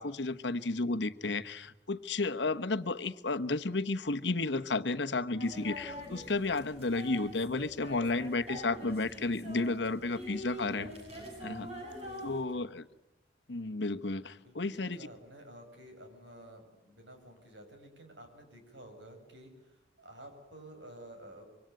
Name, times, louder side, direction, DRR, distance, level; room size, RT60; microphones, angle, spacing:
voice 1, 0.0-10.9 11.4-11.7 12.2-12.8 13.5-15.1, left 3 dB, 80° left, 1.1 m, -32 dB
sound 1, 5.4-12.4, equal, 35° right, 8.0 m, -44 dB
voice 2, 11.9-12.7 14.4-21.5, right 1 dB, 85° right, 6.9 m, -52 dB
26.0 x 24.5 x 9.2 m
head